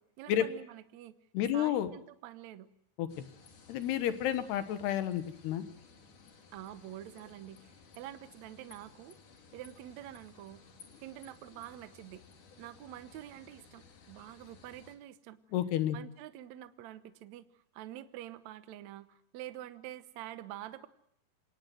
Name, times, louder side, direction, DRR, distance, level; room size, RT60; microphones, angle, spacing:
voice 1, 0.0-1.2 1.5-2.7 6.5-9.2 9.5-10.6 11.0-12.3 12.6-15.4 15.9-17.5 17.7-20.9, right 13 dB, 70° right, 11 dB, 1.8 m, -47 dB
voice 2, 1.3-1.9 3.0-3.3 3.7-5.7 15.5-16.0, left 11 dB, 85° left, 10 dB, 3.5 m, -31 dB
sound 1, 3.1-15.0, left 5 dB, 55° left, 3.9 m, -58 dB
26.5 x 19.0 x 7.8 m, 0.71 s
omnidirectional pair, 4.6 m